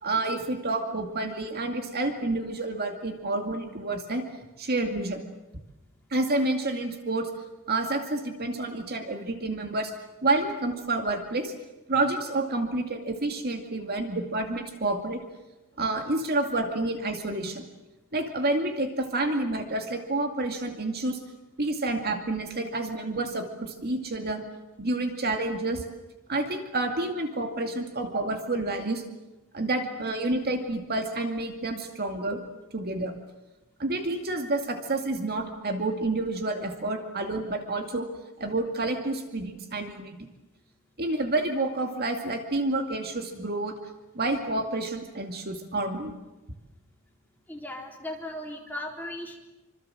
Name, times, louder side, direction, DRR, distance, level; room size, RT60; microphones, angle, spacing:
voice 1, 0.0-4.2 4.6-5.2 6.1-7.3 7.7-9.9 10.2-11.5 11.9-15.2 15.8-17.6 18.1-21.2 21.6-24.4 24.8-25.8 26.3-29.0 29.5-32.4 32.7-33.1 33.8-38.1 38.4-40.3 41.0-43.8 44.1-46.1, right 2 dB, 45° right, 4 dB, 2.3 m, -29 dB
voice 2, 47.5-49.4, left 1 dB, 10° left, 0 dB, 3.8 m, -37 dB
26.0 x 26.0 x 7.7 m, 1.1 s
head